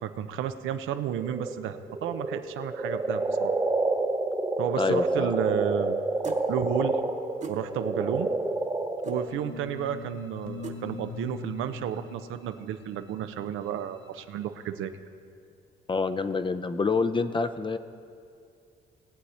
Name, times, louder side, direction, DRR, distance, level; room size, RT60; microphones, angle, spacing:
voice 1, 0.0-3.6 4.6-7.0 7.5-8.3 9.0-14.9, right 9 dB, 85° right, 10 dB, 0.6 m, -32 dB
sound 1, 1.2-9.3, right 2 dB, 15° right, 0.9 m, -28 dB
voice 2, 4.8-5.3 15.9-17.8, left 4 dB, 25° left, 10 dB, 0.5 m, -27 dB
sound 2, 6.2-6.4 7.4-7.6 9.0-9.2 10.6-10.8, right 5 dB, 35° right, 1.2 m, -38 dB
sound 3, 9.1-14.3, left 4 dB, 80° left, 0.9 m, -43 dB
19.0 x 8.0 x 4.2 m, 2.4 s
cardioid pair, 90°, 20 cm